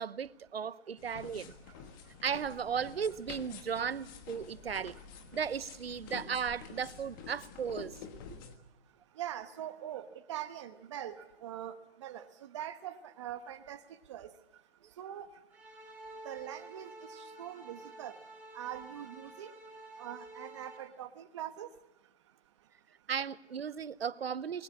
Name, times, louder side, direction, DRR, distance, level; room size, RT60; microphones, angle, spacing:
voice 1, 0.0-1.5 2.2-4.9 5.3-7.9 8.3-8.4 23.1-24.6, right 7 dB, 80° right, 0.9 m, -36 dB
sound 1, 1.0-8.5, left 7 dB, 20° left, 1.4 m, -49 dB
voice 2, 9.2-11.2 11.4-11.8 12.0-12.3 12.5-13.8 14.1-14.3 15.0-15.3 16.2-18.1 18.5-19.5 20.0-21.7, right 11 dB, 30° right, 1.1 m, -42 dB
sound 2, 15.5-20.8, right 2 dB, 5° right, 5.7 m, -50 dB
21.0 x 19.5 x 8.6 m
hypercardioid pair, 155°, 30 cm